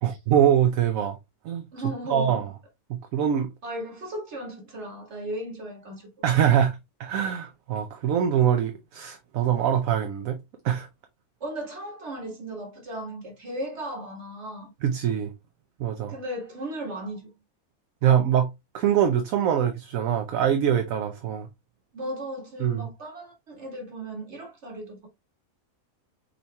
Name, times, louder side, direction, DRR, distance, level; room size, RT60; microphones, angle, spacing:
voice 1, 0.0-1.2 1.4-1.6 2.1-2.5 2.9-3.5 6.2-10.4 10.6-10.9 14.8-15.3 15.8-16.2 18.0-21.5 22.6-22.9, right 9 dB, 70° right, 1.1 m, -23 dB
voice 2, 1.7-2.4 3.6-6.1 11.4-14.7 16.1-17.3 21.9-25.1, right 1 dB, 50° right, 1.9 m, -36 dB
5.5 x 4.1 x 2.2 m
omnidirectional pair, 1.5 m